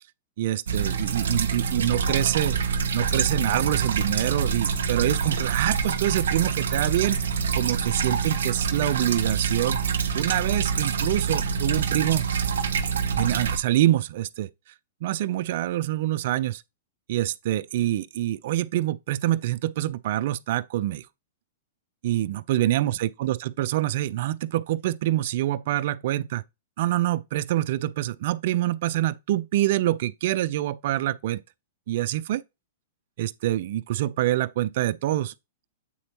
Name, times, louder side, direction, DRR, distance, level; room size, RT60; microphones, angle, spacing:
voice 1, 0.4-2.6 2.9-7.2 7.5-12.3 13.2-14.5 15.0-16.6 17.1-21.0 22.0-26.4 26.8-31.4 31.9-32.4 33.2-35.3, right 14 dB, 60° right, 0.5 m, -26 dB
sound 1, 0.7-13.6, right 6 dB, 80° right, 1.1 m, -26 dB
8.5 x 4.3 x 2.9 m
hypercardioid pair, 130°, 0 cm